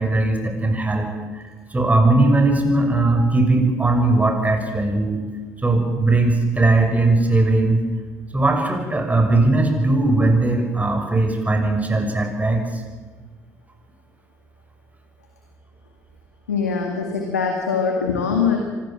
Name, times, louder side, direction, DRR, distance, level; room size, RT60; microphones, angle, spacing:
voice 1, 0.0-1.4 1.7-5.2 5.6-7.8 8.3-12.8, right 2 dB, 20° right, 3 dB, 6.5 m, -19 dB
voice 2, 16.5-18.6, left 6 dB, 90° left, 3 dB, 2.1 m, -22 dB
25.5 x 21.0 x 7.6 m, 1.4 s
hypercardioid pair, 50°, 8 cm